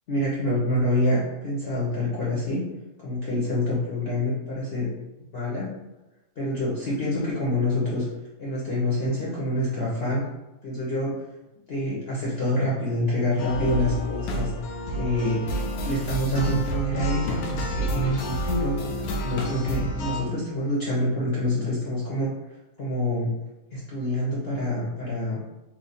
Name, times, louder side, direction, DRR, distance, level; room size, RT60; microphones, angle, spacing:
voice 1, 0.1-2.7 3.0-4.9 5.3-5.7 6.4-8.1 8.4-10.3 10.6-11.2 11.7-14.5 14.9-22.3 22.8-23.3 23.7-25.4, left 1 dB, 50° left, -7 dB, 0.9 m, -26 dB
sound 1, 13.4-20.2, equal, 80° left, 1.0 m, -29 dB
3.0 x 2.2 x 4.1 m, 0.99 s
omnidirectional pair, 1.6 m